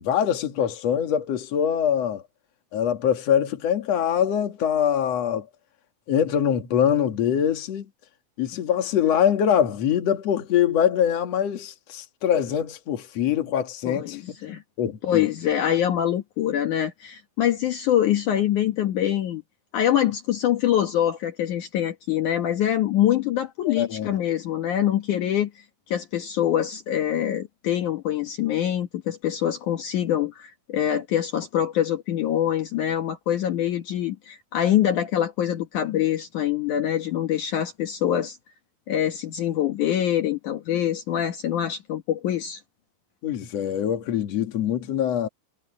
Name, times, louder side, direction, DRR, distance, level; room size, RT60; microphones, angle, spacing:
voice 1, 0.0-2.2 2.7-5.4 6.1-7.9 8.4-14.2 14.8-15.3 23.7-24.1 43.2-45.3, left 9 dB, 60° left, 1.8 m, -23 dB
voice 2, 13.8-14.6 15.0-19.4 19.7-25.5 25.9-38.4 38.9-42.6, left 11 dB, 80° left, 1.7 m, -24 dB
omnidirectional pair, 5.9 m